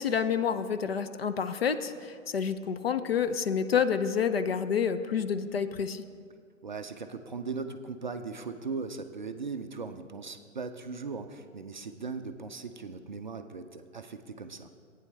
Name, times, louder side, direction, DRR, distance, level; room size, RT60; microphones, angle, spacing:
voice 1, 0.0-6.0, left 7 dB, 50° left, 11 dB, 0.5 m, -28 dB
voice 2, 6.6-14.7, right 4 dB, 35° right, 7 dB, 0.4 m, -38 dB
15.0 x 9.2 x 3.2 m, 2.1 s
figure-of-eight pair, 130°, 40 cm